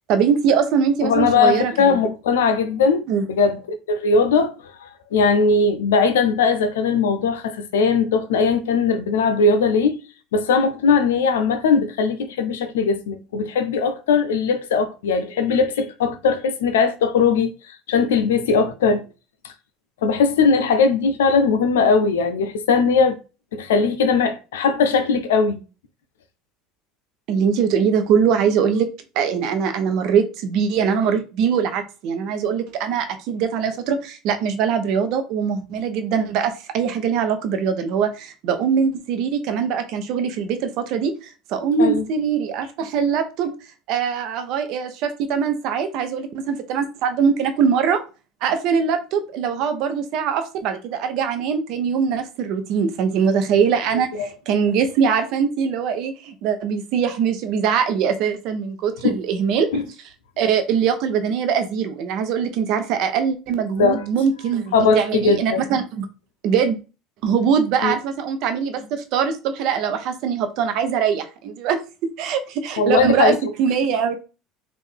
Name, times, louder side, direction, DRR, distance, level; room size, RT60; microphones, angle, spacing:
voice 1, 0.1-1.7 3.1-3.2 27.3-28.9 29.1-43.5 43.9-48.0 48.4-59.7 60.4-66.1 66.4-66.8 67.2-71.8 72.2-74.2, right 7 dB, 65° right, 0.8 m, -22 dB
voice 2, 1.0-3.6 3.9-10.0 10.3-17.5 17.9-19.0 19.4-19.5 20.0-23.2 23.5-25.6 41.8-42.0 54.2-54.3 59.0-59.2 59.7-59.8 63.8-64.0 64.7-65.6 67.8-67.9 72.8-73.4, left 5 dB, 85° left, 0.5 m, -19 dB
3.6 x 2.5 x 3.4 m
hypercardioid pair, 75°, 0 cm